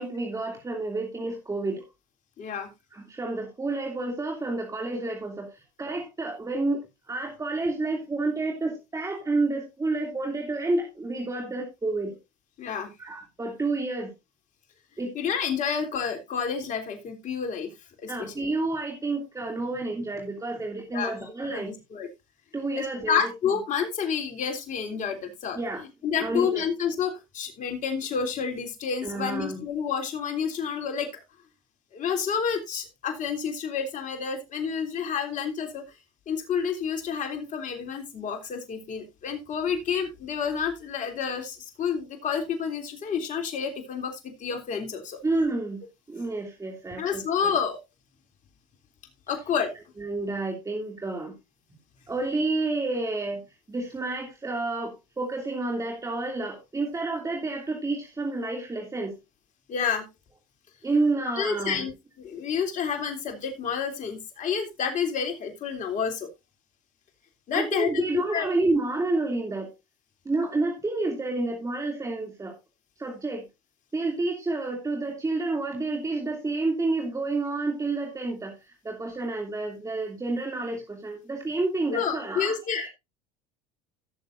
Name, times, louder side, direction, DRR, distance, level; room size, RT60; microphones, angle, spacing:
voice 1, 0.0-1.8 2.9-6.8 7.1-12.1 13.0-14.1 15.0-15.1 18.1-21.7 22.5-23.3 25.5-25.8 26.2-26.6 29.0-29.6 45.2-45.8 46.1-47.5 50.0-51.3 52.1-53.4 53.7-59.1 60.8-61.9 67.5-69.7 70.2-72.5 73.0-73.4 73.9-82.9, right 2 dB, 15° right, 1 dB, 2.8 m, -29 dB
voice 2, 2.4-2.7 12.6-12.9 15.1-17.7 18.0-18.5 20.9-21.1 21.5-22.1 22.8-25.6 26.0-31.1 31.9-35.8 36.3-45.2 47.0-47.8 49.3-49.7 59.7-60.0 61.3-61.9 62.2-66.3 67.5-68.5 81.9-82.9, left 7 dB, 45° left, 4 dB, 3.3 m, -29 dB
17.0 x 7.1 x 2.6 m, 0.24 s
supercardioid pair, 95°, 18 cm